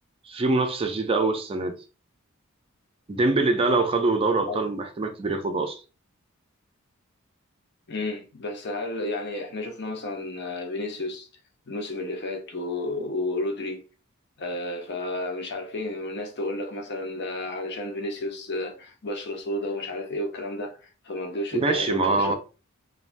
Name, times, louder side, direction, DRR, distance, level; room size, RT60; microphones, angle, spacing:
voice 1, 0.3-1.8 3.1-5.8 21.5-22.3, right 3 dB, 25° right, 0.4 m, -24 dB
voice 2, 7.9-11.3 11.7-13.8 14.4-22.3, left 2 dB, 55° left, 0.7 m, -32 dB
3.3 x 2.3 x 2.5 m
head